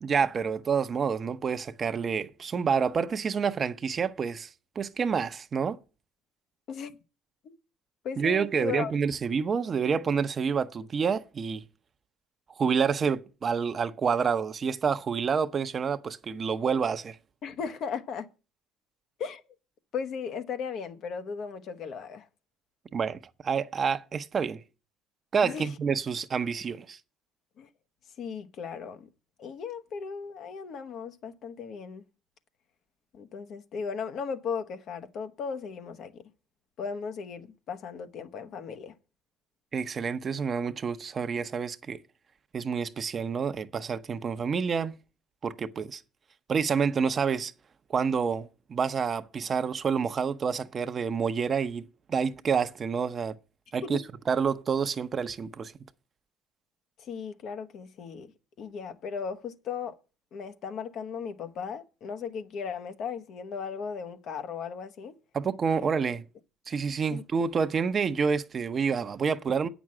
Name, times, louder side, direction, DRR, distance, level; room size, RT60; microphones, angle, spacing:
voice 1, 0.0-4.5 4.8-5.8 8.2-11.6 12.6-17.1 22.9-24.6 25.3-27.0 39.7-42.0 42.5-45.0 45.4-46.0 46.5-47.5 47.9-53.3 53.7-54.0 54.3-55.7 65.3-66.2 66.7-69.7, right 6 dB, 35° right, 0.7 m, -28 dB
voice 2, 8.0-8.9 17.4-18.3 19.2-19.4 19.9-22.3 25.4-25.7 27.6-27.7 28.2-29.1 29.4-32.0 33.1-36.2 36.8-38.9 53.8-54.0 57.0-58.3 58.6-60.0 60.3-65.1 65.8-65.9 67.1-67.2, left 6 dB, 55° left, 1.0 m, -36 dB
8.5 x 6.1 x 7.5 m
cardioid pair, 100°, 0 cm